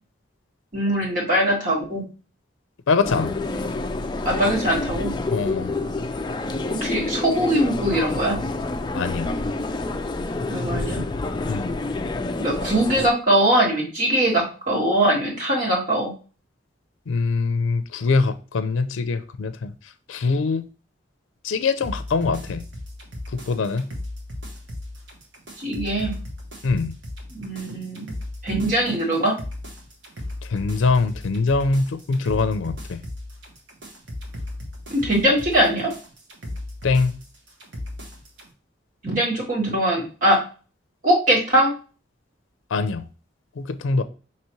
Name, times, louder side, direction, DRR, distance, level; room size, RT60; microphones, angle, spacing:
voice 1, 0.7-2.0 4.3-5.1 6.7-8.4 10.5-11.0 12.4-16.1 25.6-26.1 27.3-28.1 28.4-29.3 34.9-35.9 39.0-40.4 41.0-41.7, right 1 dB, 45° right, 1.7 m, -21 dB
voice 2, 2.9-3.3 5.3-5.7 8.9-9.3 11.5-11.7 17.1-19.7 20.1-20.6 21.4-22.6 23.3-23.9 26.6-26.9 30.5-33.0 36.8-37.1 42.7-43.0 43.6-44.0, left 4 dB, 85° left, 0.4 m, -23 dB
sound 1, 3.0-13.1, left 2 dB, 20° left, 0.3 m, -28 dB
sound 2, 21.8-38.5, left 1 dB, 70° right, 1.2 m, -36 dB
5.7 x 3.0 x 3.0 m
head